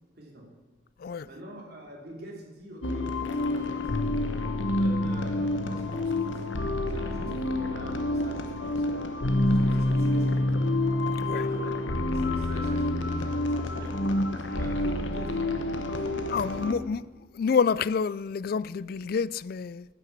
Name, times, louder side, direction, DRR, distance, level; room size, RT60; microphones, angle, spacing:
voice 1, 0.2-0.5 1.2-3.9 4.6-6.4 6.9-9.1 9.4-10.7 11.3-14.0 14.4-16.7, equal, 55° right, 3.1 m, -45 dB
sound 1, 2.8-16.7, left 1 dB, 85° left, 1.1 m, -27 dB
voice 2, 16.3-17.0 17.3-19.9, left 6 dB, 50° left, 0.3 m, -28 dB
9.9 x 9.0 x 7.3 m
head